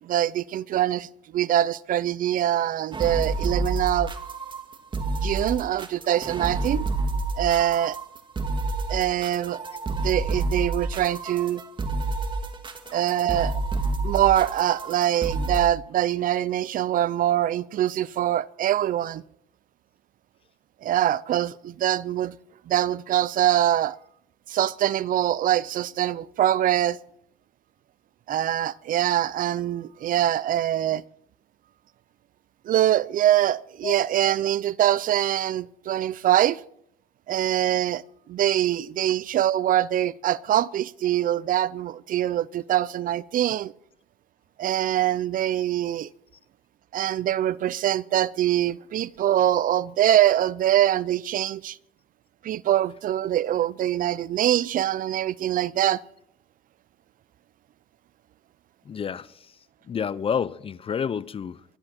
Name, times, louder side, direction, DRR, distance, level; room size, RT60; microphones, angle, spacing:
voice 1, 0.0-4.1 5.2-6.9 7.4-8.0 8.9-11.6 12.9-13.5 14.0-19.2 20.8-22.3 22.7-24.0 24.5-27.0 28.3-31.0 32.7-36.6 37.3-38.0 38.3-43.7 44.6-46.1 46.9-51.8 52.4-56.0, right 12 dB, 55° right, 0.6 m, -24 dB
sound 1, 2.9-15.7, right 2 dB, 30° right, 2.0 m, -29 dB
voice 2, 58.8-59.6 59.8-61.6, left 7 dB, 35° left, 0.6 m, -30 dB
24.0 x 12.0 x 4.4 m
cardioid pair, 110°, 17 cm